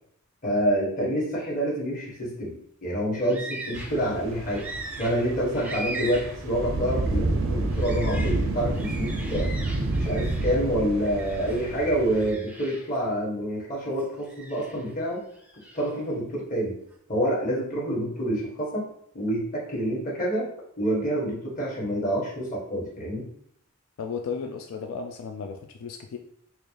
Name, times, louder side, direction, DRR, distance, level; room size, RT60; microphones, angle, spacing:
voice 1, 0.4-2.6 2.8-4.7 4.9-9.5 9.9-15.2 15.7-16.7 17.1-18.9 19.1-20.5 20.8-23.3, equal, 40° left, -5 dB, 1.4 m, -27 dB
sound 1, 3.2-4.1 4.5-6.5 6.9-7.0 7.7-10.6 11.0-11.7 12.1-13.0 14.0-14.9 15.4-15.9, right 2 dB, 5° right, 0.4 m, -40 dB
sound 2, 3.7-12.3, right 2 dB, 70° right, 0.5 m, -29 dB
voice 2, 24.0-26.2, left 5 dB, 85° left, 5 dB, 0.3 m, -34 dB
4.2 x 2.4 x 3.2 m, 0.69 s
head